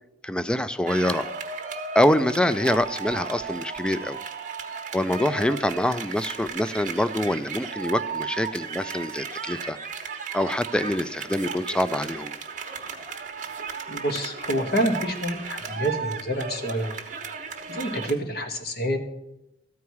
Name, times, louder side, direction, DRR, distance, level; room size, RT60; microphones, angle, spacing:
voice 1, 0.2-1.3 1.9-4.2 4.9-9.8 10.3-12.3, left 1 dB, 5° left, 13 dB, 0.3 m, -25 dB
sound 1, 0.9-18.1, right 5 dB, 45° right, 1.1 m, -35 dB
voice 2, 13.9-17.0 17.7-19.0, equal, 60° left, 6 dB, 1.4 m, -27 dB
13.5 x 4.7 x 7.0 m, 0.88 s
head